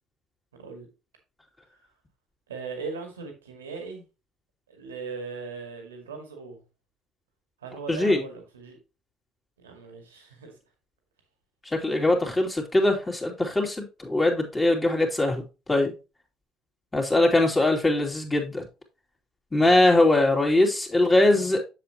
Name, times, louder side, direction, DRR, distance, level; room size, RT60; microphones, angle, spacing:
voice 1, 0.5-0.9 2.5-4.0 4.7-6.6 7.6-8.8 9.6-10.5 19.6-19.8, right 4 dB, 90° right, 2.1 m, -39 dB
voice 2, 7.9-8.2 11.8-15.4 15.7-15.9 16.9-18.6 19.5-21.6, left 2 dB, 15° left, 2.6 m, -21 dB
7.5 x 7.2 x 2.9 m
hypercardioid pair, 65°, 0 cm